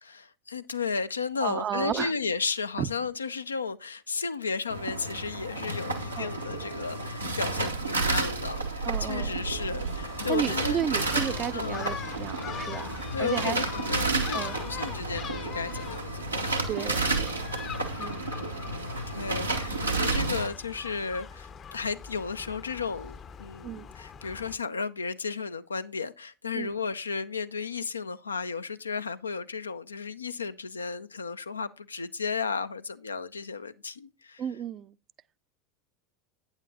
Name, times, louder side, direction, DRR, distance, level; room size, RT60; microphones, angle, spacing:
voice 1, 0.0-10.9 11.5-11.9 13.1-16.5 18.0-18.5 19.1-34.4, left 5 dB, 80° left, 0.4 m, -34 dB
voice 2, 1.4-2.1 2.8-2.9 6.2-6.3 8.8-9.3 10.3-12.9 13.2-13.6 14.3-14.6 16.7-17.4 18.0-18.2 23.6-23.9 26.5-26.7 34.4-35.0, right 9 dB, 35° right, 0.4 m, -32 dB
sound 1, 4.7-20.5, right 3 dB, 90° right, 1.0 m, -31 dB
Gull seagull, 9.5-24.6, left 7 dB, 30° left, 0.6 m, -42 dB
8.9 x 8.7 x 2.7 m
figure-of-eight pair, 80°, 0 cm